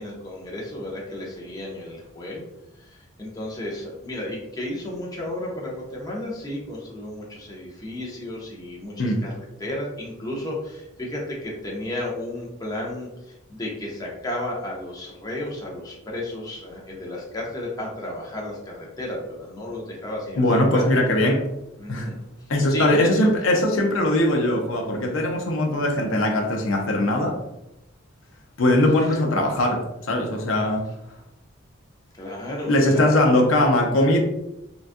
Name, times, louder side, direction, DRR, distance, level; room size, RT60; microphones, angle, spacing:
voice 1, 0.0-2.4 2.8-20.9 21.8-22.2 22.7-23.3 29.1-29.2 32.2-33.1, left 1 dB, 20° left, -3 dB, 0.6 m, -33 dB
voice 2, 20.4-21.4 21.9-22.1 22.5-27.4 28.6-29.8 30.1-30.8 32.7-34.2, left 1 dB, 65° left, 1 dB, 0.6 m, -20 dB
3.9 x 2.3 x 2.5 m, 0.90 s
head